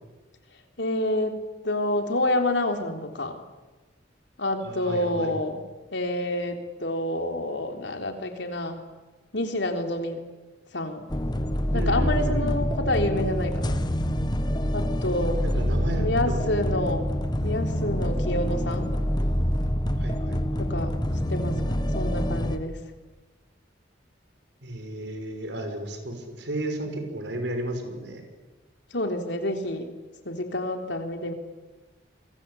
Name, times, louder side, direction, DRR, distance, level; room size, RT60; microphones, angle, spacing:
voice 1, 0.8-1.4 1.6-3.4 4.4-5.6 5.9-8.8 9.3-10.2 10.7-11.1 11.7-13.8 14.7-15.4 15.9-17.1 17.4-18.9 20.6-21.0 21.3-22.8 28.9-29.8 30.2-31.3, left 1 dB, 80° left, 5 dB, 3.8 m, -28 dB
voice 2, 4.6-5.3 11.7-12.6 15.4-16.6 20.0-20.8 24.6-28.2, right 1 dB, 75° right, 5 dB, 6.2 m, -33 dB
sound 1, 11.1-22.6, equal, 25° left, 1.5 m, -26 dB
28.5 x 23.0 x 8.6 m, 1.2 s
head